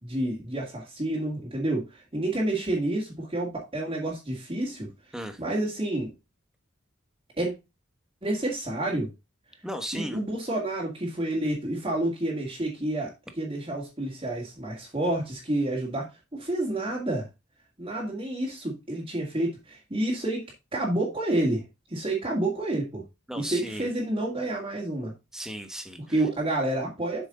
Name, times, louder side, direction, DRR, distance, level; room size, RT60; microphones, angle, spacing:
voice 1, 0.0-4.9 5.4-6.1 7.4-7.5 8.2-9.1 9.9-16.1 16.3-17.3 17.8-21.6 21.9-23.0 23.4-25.1 26.1-27.3, right 1 dB, 25° right, 2.3 m, -29 dB
voice 2, 9.6-10.2 23.3-23.9 25.3-26.3, equal, 5° right, 1.2 m, -36 dB
7.9 x 6.2 x 3.8 m
head